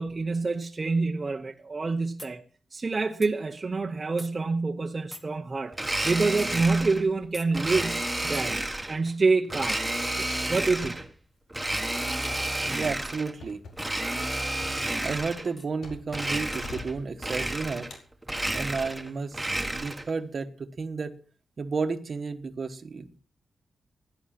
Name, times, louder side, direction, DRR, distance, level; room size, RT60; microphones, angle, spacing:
voice 1, 0.0-2.4 2.7-8.6 8.9-9.8 10.2-11.0, right 3 dB, 25° right, 0.9 m, -27 dB
sound 1, 2.2-2.4 3.2-3.3 4.2-4.3 5.1-5.3 6.4-6.5 7.3-7.5 8.3-8.5 10.2-10.4 11.7-11.9 12.8-13.1 13.8-14.0 15.6-15.7 16.5-16.7, left 1 dB, 15° left, 1.3 m, -44 dB
Domestic sounds home sounds, 5.7-7.0 7.5-9.0 9.5-11.1 11.5-13.3 13.7-15.5 16.1-16.9 17.2-18.0 18.2-20.1, right 1 dB, 10° right, 1.4 m, -31 dB
sound 2, 7.1-7.8 8.1-8.8 9.1-9.3 9.8-16.3 16.6-17.5 17.9-18.8 19.4-19.8, left 3 dB, 90° left, 5.0 m, -48 dB
voice 2, 12.7-13.6 15.0-17.9 18.5-19.4 19.7-21.2 21.6-23.2, right 4 dB, 40° right, 1.2 m, -32 dB
16.5 x 11.0 x 5.8 m
wide cardioid pair, 180°, 0 cm